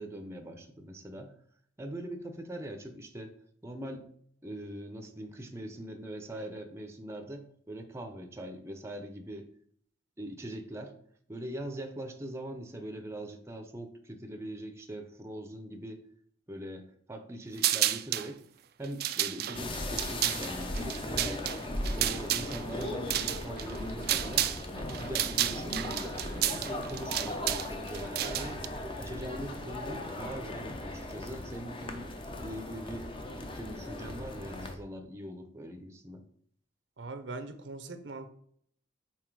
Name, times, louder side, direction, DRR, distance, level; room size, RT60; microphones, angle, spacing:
voice 1, 0.0-1.3 1.8-3.4 3.6-4.0 4.4-9.5 10.2-10.9 11.3-16.0 16.5-18.4 18.8-21.4 21.9-28.6 29.0-32.1 32.4-33.1 33.4-36.2, right 1 dB, 15° right, 5 dB, 0.6 m, -42 dB
sound 1, 17.6-18.3 18.8-24.6 24.9-28.7, right 13 dB, 55° right, 0.4 m, -31 dB
sound 2, 19.5-34.8, left 1 dB, 30° left, 0.7 m, -38 dB
voice 2, 37.0-38.3, right 3 dB, 75° right, 10 dB, 0.7 m, -41 dB
5.8 x 4.3 x 4.7 m, 0.63 s
head